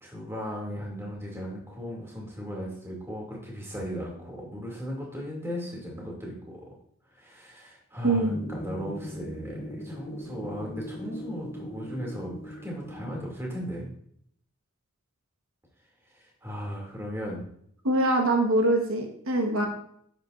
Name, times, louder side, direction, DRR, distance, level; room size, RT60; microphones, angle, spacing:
voice 1, 0.0-6.6 7.1-13.9 16.1-17.4, equal, 10° right, -3 dB, 2.6 m, -37 dB
voice 2, 8.0-8.4 17.8-19.7, right 1 dB, 80° right, 3 dB, 1.2 m, -23 dB
sound 1, 8.3-13.3, equal, 45° left, 0.8 m, -39 dB
10.0 x 8.1 x 2.6 m, 0.66 s
head